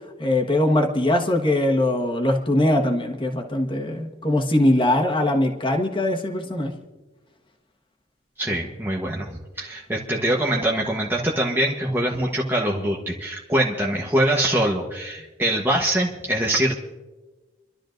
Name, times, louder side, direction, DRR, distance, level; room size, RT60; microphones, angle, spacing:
voice 1, 0.2-6.7, left 1 dB, 25° left, 2 dB, 1.4 m, -21 dB
voice 2, 8.4-16.8, right 1 dB, 10° right, -2 dB, 1.1 m, -23 dB
29.0 x 12.5 x 2.6 m, 1.2 s
head